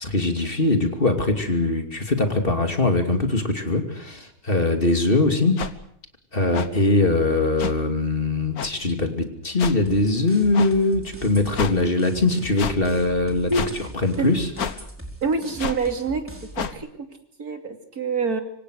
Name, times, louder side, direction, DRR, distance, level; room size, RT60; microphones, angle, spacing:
voice 1, 0.0-5.6 6.3-13.5 14.0-14.5, left 2 dB, 40° left, 6 dB, 3.0 m, -21 dB
sound 1, 5.6-5.7 6.5-6.7 7.6-7.7 8.6-8.7 9.6-9.8 10.5-10.7 11.5-11.7 12.6-12.8 13.5-13.7 14.6-14.8 15.6-15.8 16.6-16.8, left 6 dB, 85° left, 1.8 m, -28 dB
sound 2, 9.9-16.7, equal, 10° right, 4.7 m, -41 dB
voice 2, 15.2-16.2 16.7-16.9 17.4-18.4, right 4 dB, 90° right, 5 dB, 3.4 m, -25 dB
26.5 x 24.5 x 6.6 m, 0.68 s
omnidirectional pair, 1.5 m